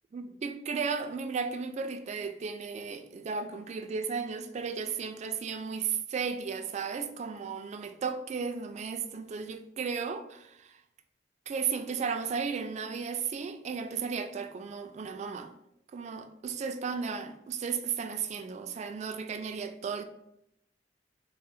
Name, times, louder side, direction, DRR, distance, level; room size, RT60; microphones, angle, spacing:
voice 1, 0.1-10.8 11.5-15.5 15.9-20.0, right 5 dB, 40° right, 0.3 m, -34 dB
3.6 x 2.0 x 4.0 m
head